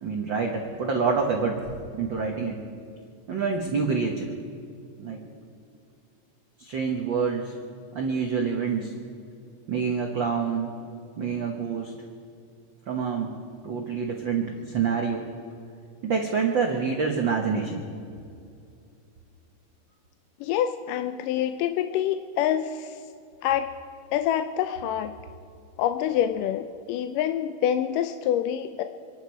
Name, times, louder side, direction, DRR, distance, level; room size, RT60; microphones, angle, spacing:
voice 1, 0.0-2.6 3.3-4.3 5.0-5.2 6.6-7.5 7.9-8.9 9.7-10.7 11.2-11.9 12.9-13.3 13.6-15.2 16.0-17.8, right 5 dB, 85° right, 1 dB, 1.0 m, -27 dB
voice 2, 20.4-22.9 23.4-23.7 24.1-25.1 25.8-28.8, left 10 dB, 80° left, 8 dB, 2.1 m, -26 dB
26.5 x 11.5 x 4.7 m, 2.4 s
omnidirectional pair, 4.0 m